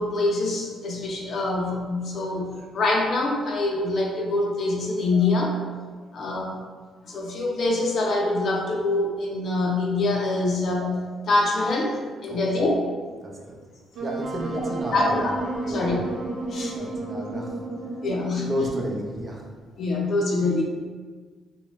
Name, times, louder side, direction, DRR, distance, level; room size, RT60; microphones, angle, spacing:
voice 1, 0.0-5.6 6.1-6.6 7.0-12.7 14.9-15.3 15.7-16.0 16.5-16.7 18.0-18.5 19.8-20.6, left 2 dB, 55° left, -1 dB, 0.6 m, -25 dB
voice 2, 13.2-13.6 14.0-15.3 15.6-16.1 16.7-17.6 18.5-19.4, equal, 35° right, -1 dB, 0.5 m, -32 dB
Wind instrument woodwind instrument, 13.9-19.0, right 2 dB, 70° right, 0.8 m, -32 dB
2.7 x 2.2 x 3.0 m, 1.4 s
cardioid pair, 90°, 0 cm